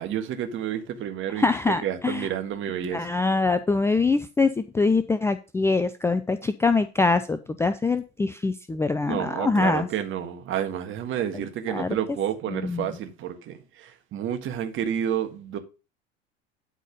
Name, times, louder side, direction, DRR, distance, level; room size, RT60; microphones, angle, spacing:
voice 1, 0.0-1.5 1.8-3.2 9.0-15.6, right 9 dB, 35° right, 1.7 m, -30 dB
voice 2, 1.3-2.3 2.9-9.9 11.3-12.0 12.5-12.9, left 3 dB, 10° left, 0.5 m, -24 dB
12.0 x 4.2 x 5.2 m
figure-of-eight pair, 80°, 34 cm